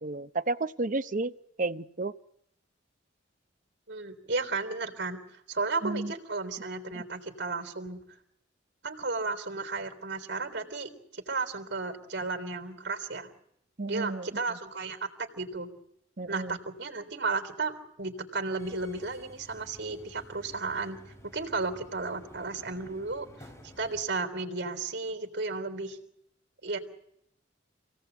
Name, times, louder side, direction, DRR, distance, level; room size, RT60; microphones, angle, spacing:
voice 1, 0.0-1.3 1.6-2.1 5.8-6.1 6.9-7.0 13.8-14.6 16.2-16.6, right 2 dB, 45° right, 12 dB, 0.9 m, -32 dB
voice 2, 3.9-8.0 8.8-13.3 13.9-15.7 16.3-23.3 23.8-26.0 26.6-26.8, right 3 dB, 65° right, 6 dB, 3.5 m, -34 dB
Subway metro underground, 18.6-24.0, equal, 15° left, 4.0 m, -52 dB
27.5 x 18.0 x 8.1 m, 0.78 s
head